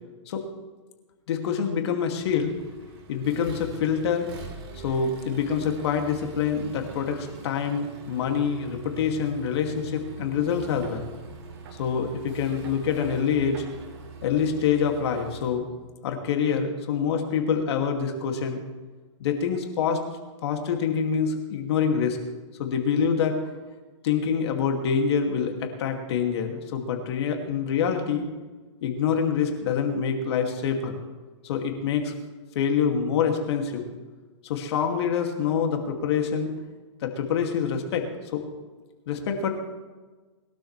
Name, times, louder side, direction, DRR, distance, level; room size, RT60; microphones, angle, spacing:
voice 1, 1.3-2.5 3.1-4.3 4.7-11.1 11.8-13.7 14.2-15.7 16.0-18.6 19.2-20.0 20.4-22.2 22.6-23.4 24.0-28.3 28.8-31.0 31.4-32.1 32.5-33.8 34.4-36.6 37.0-38.4 39.1-39.5, left 7 dB, 60° left, 3 dB, 2.4 m, -26 dB
Accelerating revving vroom, 2.2-15.5, right 4 dB, 55° right, 3.5 m, -43 dB
22.0 x 12.0 x 3.3 m, 1.3 s
hypercardioid pair, 140°, 16 cm